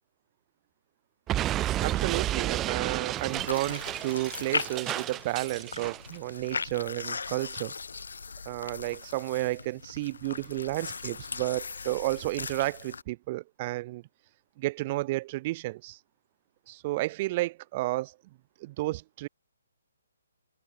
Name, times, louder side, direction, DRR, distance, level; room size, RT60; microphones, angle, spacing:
Explosion, 1.3-6.1, right 13 dB, 20° right, 3.4 m, -31 dB
voice 1, 1.8-7.7 8.4-14.0 14.6-16.0 16.7-18.1 18.6-19.3, right 19 dB, 35° right, 6.5 m, -32 dB
sound 1, 3.2-13.0, left 5 dB, 70° left, 4.5 m, -39 dB
figure-of-eight pair, 140°, 0 cm